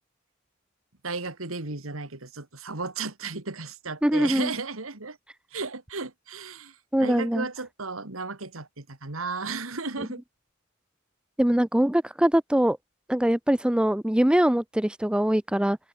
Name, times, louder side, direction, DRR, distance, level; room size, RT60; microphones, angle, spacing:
voice 1, 1.0-5.2 5.5-6.7 7.0-10.2, right 4 dB, 85° right, 2.7 m, -34 dB
voice 2, 4.0-4.5 6.9-7.5 10.0-10.1 11.4-12.8 13.1-15.8, right 1 dB, 5° right, 0.4 m, -22 dB
head